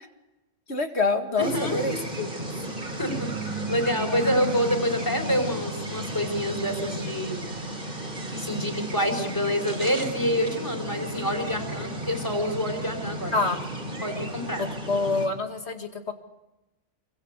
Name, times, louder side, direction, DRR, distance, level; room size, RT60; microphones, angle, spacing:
voice 1, 0.7-2.5 13.3-13.6 14.6-16.1, left 3 dB, 65° left, 6 dB, 2.4 m, -27 dB
voice 2, 1.4-2.0 2.9-3.3 3.7-7.4 8.3-13.4 14.0-14.6, equal, 15° left, 4 dB, 4.6 m, -27 dB
sound 1, 1.4-15.3, right 1 dB, 50° right, 3.4 m, -33 dB
27.5 x 24.0 x 8.2 m, 1.0 s
omnidirectional pair, 1.2 m